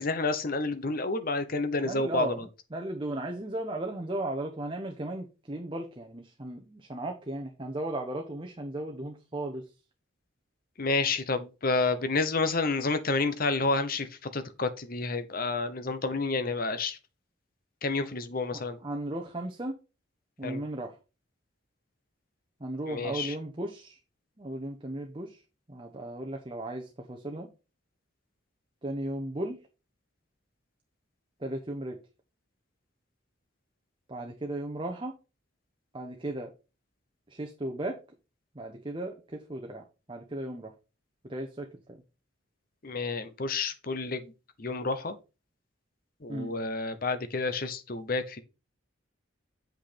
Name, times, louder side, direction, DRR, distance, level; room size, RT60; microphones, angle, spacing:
voice 1, 0.0-2.5 10.8-17.0 17.8-18.8 20.4-20.6 22.9-23.4 42.8-44.3 44.6-45.2 46.2-48.4, left 3 dB, 45° left, 0.8 m, -30 dB
voice 2, 1.8-2.4 2.7-9.7 18.8-19.8 20.4-20.9 22.6-24.0 24.4-25.4 25.7-27.5 28.8-29.6 31.4-32.0 34.1-35.1 35.9-36.5 37.3-38.0 38.5-39.8 40.1-40.7 41.2-42.0 46.3-46.5, right 1 dB, 25° right, 0.9 m, -36 dB
7.8 x 5.7 x 4.2 m
head